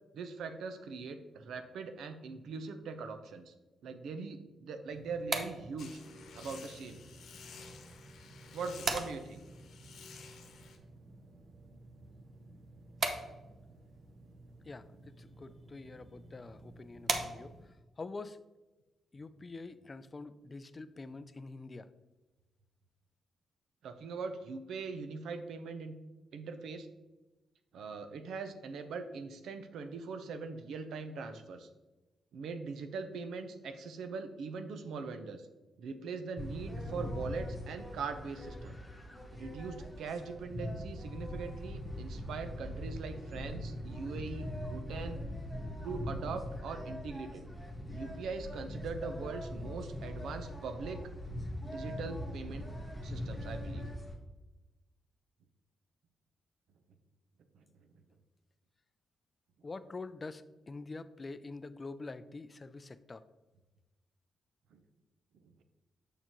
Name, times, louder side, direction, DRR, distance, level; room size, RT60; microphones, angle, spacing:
voice 1, 0.1-3.5 3.8-6.0 6.3-7.0 8.5-9.4 23.8-25.9 26.3-26.9 27.7-31.7 32.3-35.5 35.8-38.8 39.3-45.2 45.8-47.4 47.9-51.0 51.6-52.7 53.0-53.9 57.5-57.6 64.7-64.8 65.4-65.5, right 4 dB, 85° right, 8 dB, 0.7 m, -41 dB
sound 1, 4.9-17.8, right 3 dB, 40° right, 0.7 m, -42 dB
sound 2, 5.8-10.8, left 4 dB, 80° left, 1.0 m, -52 dB
voice 2, 14.6-18.4 19.1-21.9 59.6-63.3, left 3 dB, 25° left, 13 dB, 0.3 m, -46 dB
sound 3, 36.4-54.1, left 1 dB, ahead, 1.3 m, -41 dB
7.0 x 6.6 x 3.0 m, 1.1 s
wide cardioid pair, 145°, 0 cm